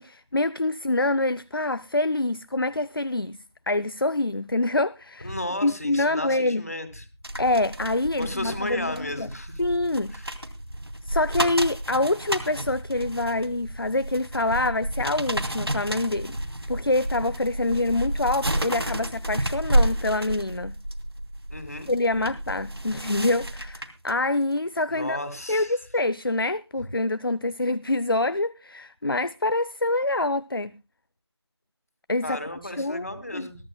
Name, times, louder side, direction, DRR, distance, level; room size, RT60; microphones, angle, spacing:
voice 1, 0.0-3.4 3.7-5.3 5.6-6.6 7.4-9.3 9.6-10.1 11.1-16.4 16.7-20.8 21.9-25.2 25.5-30.7 32.1-32.4 32.8-33.1 33.3-33.5, left 2 dB, 55° left, 0.6 m, -26 dB
voice 2, 5.2-7.0 8.2-9.6 10.1-10.3 21.5-21.9 24.9-25.7 32.2-33.6, left 1 dB, 35° left, 2.2 m, -34 dB
sound 1, 7.2-24.1 24.6-24.8, right 1 dB, 60° right, 2.7 m, -30 dB
22.5 x 12.5 x 2.2 m
figure-of-eight pair, 175°, 14 cm